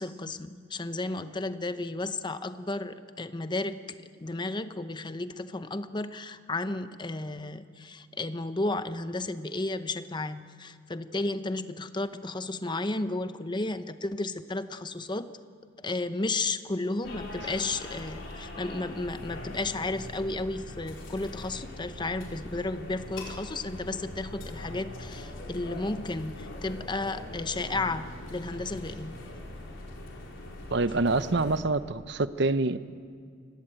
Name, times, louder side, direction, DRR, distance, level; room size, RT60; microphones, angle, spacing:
voice 1, 0.0-15.3 15.8-29.1, left 2 dB, 25° left, 11 dB, 0.9 m, -33 dB
sound 1, 17.0-31.6, left 1 dB, 75° left, 4.2 m, -42 dB
voice 2, 30.7-32.8, right 3 dB, 60° right, 13 dB, 0.9 m, -26 dB
29.5 x 17.0 x 9.0 m, 2.1 s
head